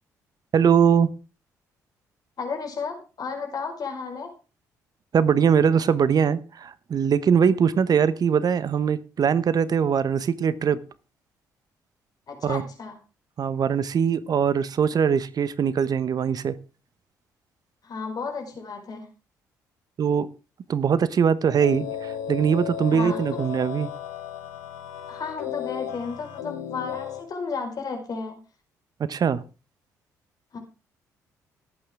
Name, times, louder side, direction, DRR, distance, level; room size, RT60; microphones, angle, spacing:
voice 1, 0.5-1.1 5.1-10.8 12.4-12.6 13.4-16.5 20.0-20.3 20.7-23.9 29.0-29.4, right 7 dB, 45° right, 1.0 m, -22 dB
voice 2, 2.4-4.3 12.3-12.9 17.8-19.1 22.9-23.2 25.1-28.4 30.5-30.6, left 4 dB, 45° left, 4.8 m, -33 dB
sound 1, 21.6-27.2, left 9 dB, 80° left, 1.5 m, -34 dB
19.0 x 8.7 x 3.6 m
figure-of-eight pair, 45°, 9 cm